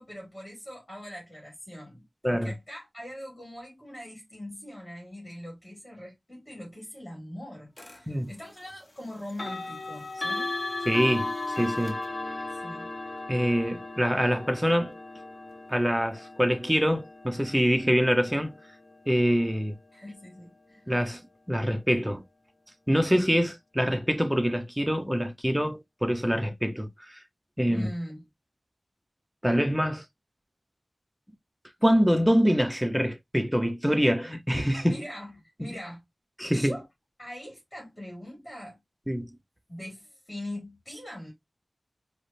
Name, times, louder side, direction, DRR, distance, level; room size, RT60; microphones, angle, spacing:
voice 1, 0.0-10.6 12.5-12.9 19.9-20.8 27.7-28.2 34.8-36.0 36.5-36.9 37.2-38.8 39.7-41.3, left 1 dB, 20° left, 2.0 m, -42 dB
sound 1, 7.8-8.0 9.3-20.2, left 2 dB, 40° left, 0.8 m, -37 dB
voice 2, 10.9-12.0 13.3-14.9 15.7-18.6 19.1-19.8 20.9-21.2 21.5-22.2 22.9-27.2 27.6-27.9 29.4-30.0 31.8-35.0 36.4-36.8 39.1-39.3, equal, 5° right, 0.7 m, -25 dB
4.7 x 2.1 x 2.6 m
wide cardioid pair, 60°, 0 cm